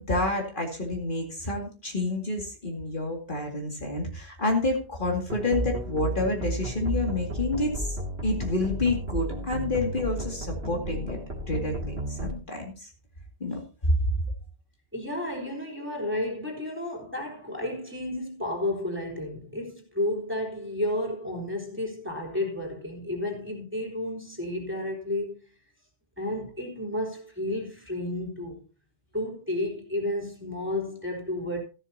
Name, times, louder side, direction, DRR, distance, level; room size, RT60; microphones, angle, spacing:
voice 1, 0.0-8.0 8.2-11.2 11.5-12.9 13.4-13.6 13.9-14.0, left 2 dB, 50° left, 2.5 m, -28 dB
sound 1, 5.3-12.3, right 1 dB, 80° right, 2.3 m, -33 dB
voice 2, 14.9-25.4 26.2-28.6 29.1-31.6, left 1 dB, 10° right, 3.5 m, -32 dB
14.5 x 12.0 x 2.8 m
omnidirectional pair, 1.1 m